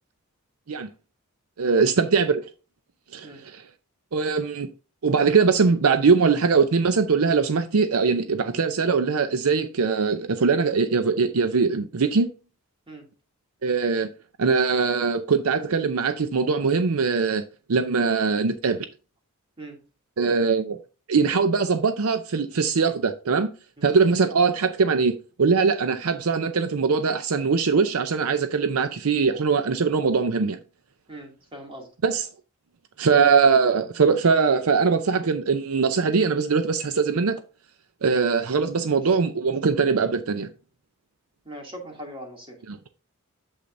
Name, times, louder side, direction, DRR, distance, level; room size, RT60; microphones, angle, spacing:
voice 1, 1.6-2.4 3.1-3.6 4.1-4.7 5.0-12.3 13.6-14.1 14.4-17.4 17.7-18.9 20.2-20.8 21.1-23.5 23.8-25.1 25.4-30.6 32.0-32.3 33.0-37.4 38.0-40.5 42.7-42.8, right 5 dB, 75° right, 0.6 m, -21 dB
voice 2, 23.8-24.1 31.1-31.9 38.8-39.0 41.5-42.6, right 1 dB, 25° right, 2.5 m, -41 dB
8.3 x 7.3 x 2.6 m
head